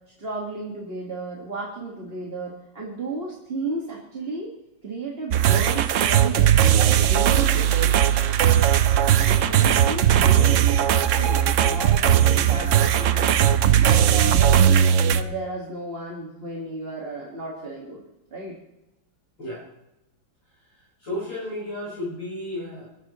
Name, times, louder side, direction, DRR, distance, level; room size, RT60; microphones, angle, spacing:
voice 1, 0.2-4.5 4.8-8.0 9.2-13.5 13.8-14.8 15.1-18.0 18.3-18.6, right 3 dB, 30° right, -2 dB, 1.9 m, -33 dB
sound 1, 5.3-15.2, right 10 dB, 85° right, 0.6 m, -18 dB
voice 2, 21.0-22.9, left 1 dB, 70° left, -5 dB, 5.6 m, -32 dB
22.0 x 13.0 x 3.0 m, 0.91 s
omnidirectional pair, 2.1 m